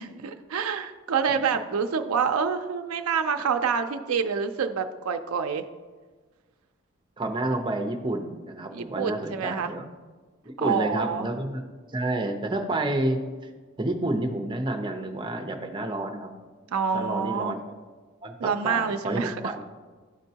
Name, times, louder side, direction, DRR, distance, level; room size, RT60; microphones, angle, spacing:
voice 1, 0.0-5.6 8.7-9.7 10.6-11.3 16.7-17.6 18.4-19.5, right 6 dB, 90° right, 6 dB, 0.4 m, -27 dB
voice 2, 7.2-9.8 10.4-11.6 11.9-13.2 13.8-16.3 16.9-17.6 18.2-19.6, right 1 dB, 25° right, 4 dB, 0.6 m, -29 dB
12.5 x 4.4 x 2.8 m, 1.4 s
head